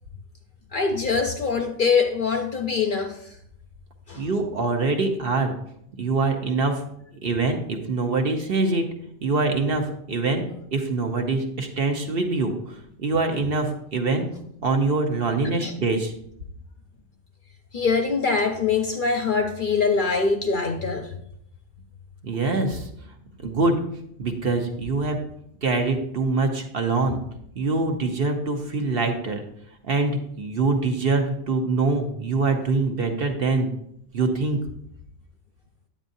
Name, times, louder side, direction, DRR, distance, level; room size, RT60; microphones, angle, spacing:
voice 1, 0.7-3.3 4.1-4.3 15.6-15.7 17.7-21.1, left 5 dB, 50° left, 0.7 m, -23 dB
voice 2, 4.1-5.5 6.0-6.8 7.2-8.8 9.2-10.4 10.7-14.3 14.6-16.1 22.2-22.9 23.4-23.8 24.2-25.2 25.6-27.2 27.6-29.4 29.8-33.7 34.1-34.6, right 3 dB, 50° right, 1.0 m, -24 dB
9.2 x 8.7 x 2.7 m
omnidirectional pair, 1.3 m